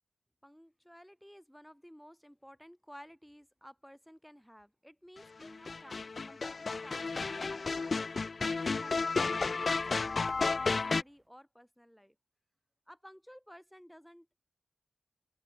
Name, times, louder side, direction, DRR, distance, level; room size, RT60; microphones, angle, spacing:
voice 1, 0.4-8.0 8.4-12.1 12.9-14.4, equal, ahead, 1.3 m, -55 dB
sound 1, 5.4-11.0, left 4 dB, 50° left, 0.4 m, -32 dB
sound 2, 5.4-11.3, right 2 dB, 30° right, 6.1 m, -63 dB
open air
wide cardioid pair, 80°, 0 cm